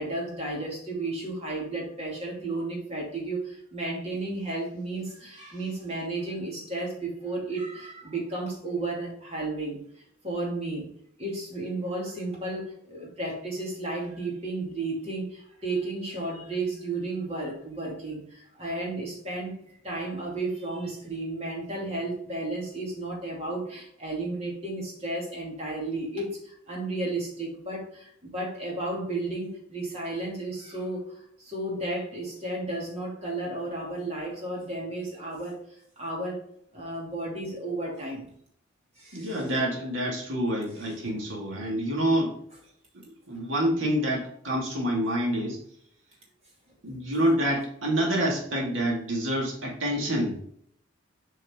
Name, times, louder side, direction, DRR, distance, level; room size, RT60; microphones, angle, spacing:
voice 1, 0.0-9.8 10.2-10.9 11.2-19.5 19.8-35.6 36.0-36.4 36.7-38.3 39.0-39.4, right 2 dB, 30° right, -2 dB, 2.6 m, -33 dB
voice 2, 39.1-42.3 43.3-45.6 46.8-50.5, equal, 80° right, -2 dB, 2.2 m, -27 dB
7.7 x 4.7 x 3.7 m, 0.68 s
head